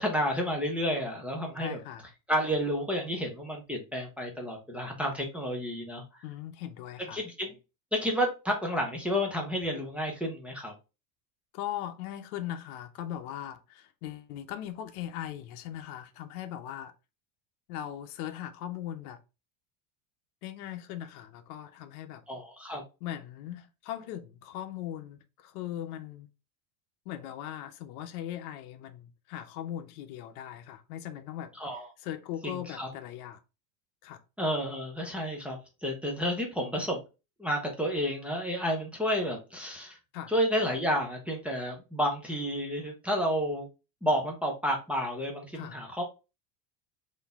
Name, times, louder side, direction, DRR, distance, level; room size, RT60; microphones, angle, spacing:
voice 1, 0.0-1.8 2.3-6.0 7.1-7.5 7.9-10.7 22.3-22.8 31.6-31.8 32.4-32.9 34.4-37.0 37.4-40.0 40.3-43.7 44.0-46.0, equal, 5° right, 0.6 m, -30 dB
voice 2, 1.6-2.1 6.2-7.2 11.5-16.9 17.7-19.2 20.4-22.2 23.0-26.3 27.1-31.5 32.0-33.4 34.0-34.2 40.1-40.3 45.5-45.8, left 11 dB, 80° left, 0.7 m, -39 dB
3.9 x 2.7 x 3.4 m
cardioid pair, 150°, 44 cm